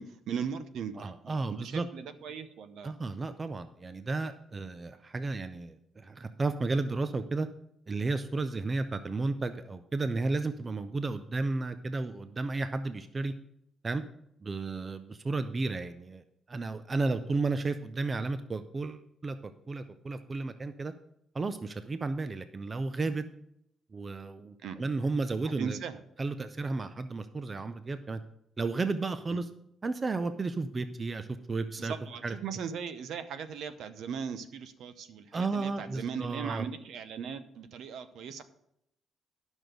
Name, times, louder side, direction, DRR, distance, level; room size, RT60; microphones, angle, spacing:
voice 1, 0.0-2.9 24.6-24.8 25.4-26.0 31.8-38.4, right 7 dB, 65° right, 11 dB, 0.8 m, -38 dB
voice 2, 1.0-1.9 2.8-7.5 7.9-13.3 13.8-14.0 14.4-20.9 21.3-23.2 23.9-25.8 26.2-28.2 28.6-29.5 29.8-31.9 32.2-32.3 35.3-36.6, right 3 dB, 20° right, 11 dB, 0.4 m, -33 dB
11.0 x 6.2 x 5.1 m, 0.76 s
cardioid pair, 175°, 0 cm